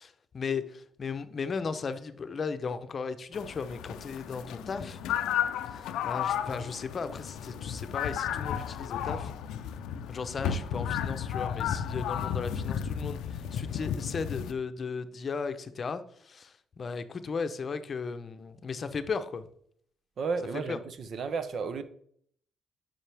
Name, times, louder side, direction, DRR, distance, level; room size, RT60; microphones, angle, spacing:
voice 1, 0.0-5.0 5.7-9.3 10.1-19.5 20.7-20.8, left 5 dB, 45° left, 0.7 m, -36 dB
sound 1, 3.3-14.5, left 9 dB, 85° left, 0.4 m, -33 dB
voice 2, 20.2-21.8, right 5 dB, 55° right, 0.7 m, -33 dB
7.4 x 5.8 x 3.4 m
cardioid pair, 90°, 0 cm